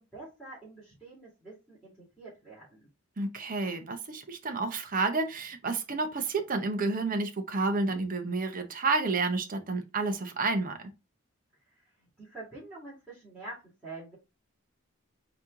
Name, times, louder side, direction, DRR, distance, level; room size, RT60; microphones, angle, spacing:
voice 1, 0.0-2.9 12.2-14.2, right 2 dB, 5° right, 2.2 m, -46 dB
voice 2, 3.2-10.9, right 3 dB, 40° right, 0.8 m, -30 dB
4.2 x 2.9 x 3.6 m
head